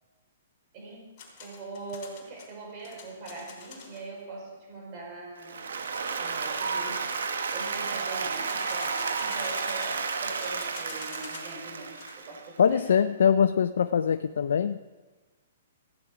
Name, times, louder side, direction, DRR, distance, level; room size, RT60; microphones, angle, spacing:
voice 1, 0.7-5.7 6.2-7.1 7.5-13.0, right 3 dB, 35° right, -1 dB, 4.9 m, -42 dB
sound 1, 1.2-4.1 8.3-11.6 11.8-12.1, left 5 dB, 35° left, 3.4 m, -47 dB
Applause, 5.4-12.6, right 5 dB, 90° right, 1.3 m, -32 dB
voice 2, 12.6-14.8, left 7 dB, 75° left, 11 dB, 0.4 m, -23 dB
14.5 x 9.5 x 4.9 m, 1.3 s
hypercardioid pair, 155°, 0 cm